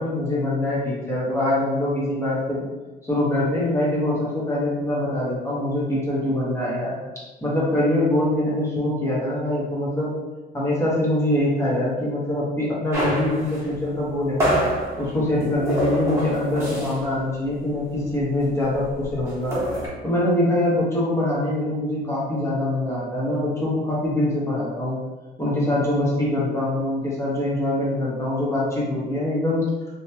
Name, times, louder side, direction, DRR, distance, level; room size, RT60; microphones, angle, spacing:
voice 1, 0.0-2.6 3.1-7.0 7.4-10.1 10.5-14.6 15.0-19.6 20.0-25.0 25.4-29.6, left 1 dB, 15° left, -7 dB, 1.0 m, -24 dB
sound 1, 12.9-17.2 17.5-17.7 17.9-19.9, equal, 15° right, 1.1 m, -27 dB
2.8 x 2.8 x 2.3 m, 1.2 s
cardioid pair, 110°, 17 cm